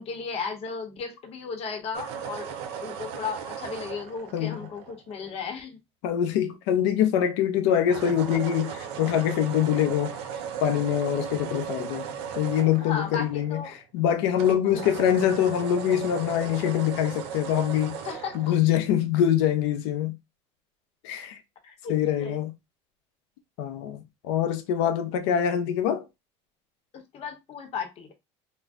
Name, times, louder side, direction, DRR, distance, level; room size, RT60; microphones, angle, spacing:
voice 1, 0.0-2.5 2.8-5.8 12.8-13.8 14.6-14.8 18.0-18.5 21.6-22.4 26.9-28.1, left 5 dB, 50° left, 0.9 m, -35 dB
sound 1, 1.9-5.4 7.8-14.0 14.3-18.6, right 8 dB, 90° right, 0.6 m, -37 dB
voice 2, 6.0-10.2 10.6-12.1 12.3-13.6 13.9-18.0 18.3-20.2 21.0-21.4 21.9-22.5 23.6-26.0, left 10 dB, 90° left, 0.6 m, -24 dB
2.6 x 2.1 x 3.5 m
supercardioid pair, 110°, 14 cm